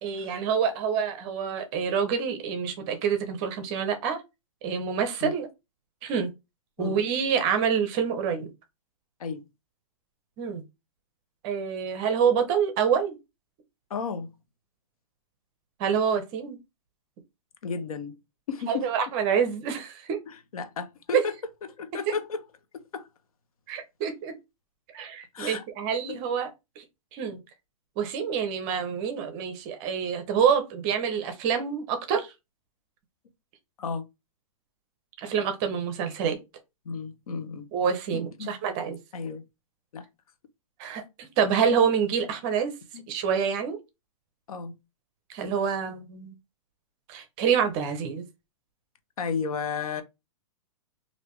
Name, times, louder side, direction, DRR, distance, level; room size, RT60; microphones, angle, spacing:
voice 1, 0.0-4.2 4.6-5.5 6.0-6.3 6.8-8.5 10.4-10.6 11.4-13.1 15.8-16.6 18.7-20.2 21.1-21.3 22.1-22.2 23.7-24.3 24.9-26.8 27.1-27.4 28.0-32.3 35.2-36.4 37.7-39.0 40.8-42.7 43.1-43.8 45.3-46.4 47.1-48.3, right 7 dB, 25° right, 0.6 m, -27 dB
voice 2, 13.9-14.3 17.6-18.2 18.5-18.9 20.5-21.2 21.8-22.4 22.7-23.1 25.3-25.6 26.1-26.2 33.8-34.0 36.9-37.7 38.1-38.5 39.1-39.4 39.9-40.0 42.9-43.1 44.5-44.7 49.2-50.0, left 5 dB, 75° left, 0.7 m, -33 dB
3.3 x 2.6 x 3.1 m
hypercardioid pair, 160°, 18 cm